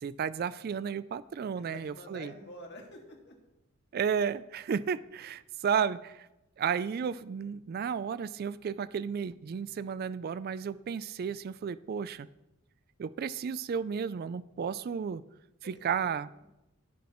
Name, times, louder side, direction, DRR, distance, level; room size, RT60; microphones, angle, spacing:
voice 1, 0.0-2.3 3.9-6.3 6.6-12.3 13.0-15.2 15.6-16.3, right 7 dB, 45° right, 17 dB, 0.3 m, -33 dB
voice 2, 1.6-3.4 15.6-16.1 16.4-16.5, left 1 dB, 50° left, 1 dB, 2.0 m, -48 dB
21.0 x 7.1 x 3.0 m, 0.95 s
head